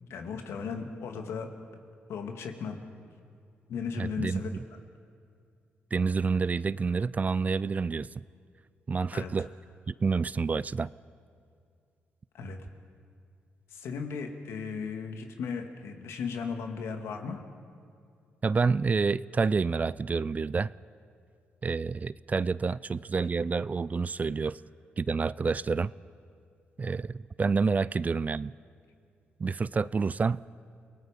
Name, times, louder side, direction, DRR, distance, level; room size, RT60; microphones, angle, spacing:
voice 1, 0.1-1.5 2.1-2.8 3.7-4.5 9.1-9.3 12.3-12.6 13.7-17.4, left 5 dB, 80° left, 5 dB, 2.1 m, -36 dB
voice 2, 4.0-4.6 5.9-8.2 8.9-9.5 9.9-10.9 18.4-20.7 21.6-24.6 25.0-25.9 26.8-28.5 29.4-30.4, right 4 dB, 35° right, 20 dB, 0.4 m, -28 dB
29.5 x 18.5 x 5.2 m, 2.3 s
cardioid pair, 70°, 4 cm